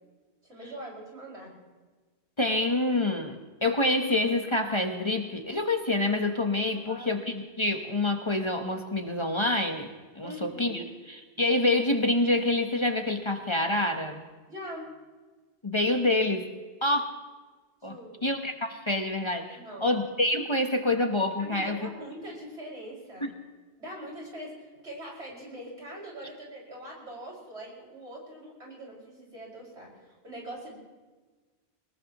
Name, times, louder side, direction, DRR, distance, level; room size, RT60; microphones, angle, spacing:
voice 1, 0.4-1.5 6.7-7.1 10.2-10.8 14.5-14.9 17.8-18.3 19.5-19.9 21.4-23.3 23.8-30.7, right 1 dB, 80° right, -4 dB, 6.1 m, -42 dB
voice 2, 2.4-10.8 11.4-14.3 15.6-16.5 16.8-17.1 17.8-17.9 18.2-21.8 23.2-23.3, left 2 dB, 25° left, 4 dB, 1.2 m, -27 dB
23.0 x 19.5 x 3.1 m, 1.3 s
omnidirectional pair, 1.1 m